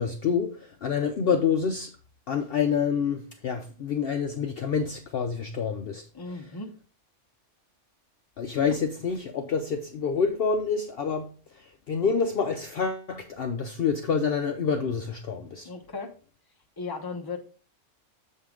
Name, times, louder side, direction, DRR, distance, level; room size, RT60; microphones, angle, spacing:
voice 1, 0.0-1.9 2.3-6.0 8.4-11.3 11.9-15.7, left 6 dB, 55° left, 0.8 m, -27 dB
voice 2, 6.1-6.8 15.6-16.2 16.8-17.4, left 4 dB, 20° left, 0.9 m, -36 dB
7.2 x 5.4 x 3.8 m
omnidirectional pair, 1.3 m